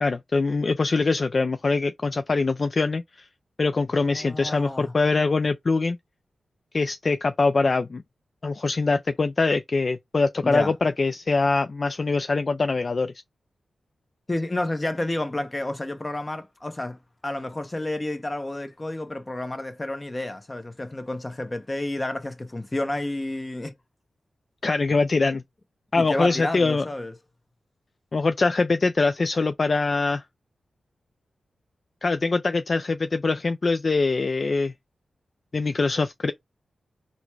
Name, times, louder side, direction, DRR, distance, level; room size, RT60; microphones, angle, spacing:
voice 1, 0.0-3.3 3.6-6.0 6.7-8.0 8.4-13.1 24.6-25.4 25.9-26.9 28.1-30.2 32.0-34.7 35.5-36.3, left 3 dB, 50° left, 0.3 m, -23 dB
voice 2, 4.0-4.9 10.4-10.7 14.3-23.7 25.9-27.2, left 1 dB, 25° left, 0.9 m, -30 dB
4.0 x 2.2 x 4.6 m
cardioid pair, 60°, 0 cm